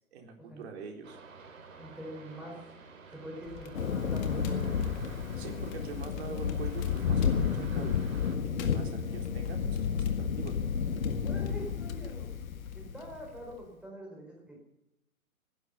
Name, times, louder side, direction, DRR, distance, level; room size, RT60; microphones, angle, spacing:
voice 1, 0.1-1.2 5.4-8.0 8.4-10.6, right 5 dB, 45° right, 3 dB, 4.0 m, -44 dB
sound 1, 1.0-8.4, right 4 dB, 60° right, 3.4 m, -51 dB
voice 2, 1.8-2.6 3.1-4.7 11.2-12.3 12.7-14.6, right 1 dB, ahead, -1 dB, 4.5 m, -44 dB
Crackle, 3.4-12.8, left 9 dB, 30° left, 1.9 m, -47 dB
Thunder, 3.7-13.4, left 7 dB, 70° left, 1.6 m, -31 dB
19.0 x 11.0 x 6.9 m, 0.88 s
figure-of-eight pair, 125°, 43 cm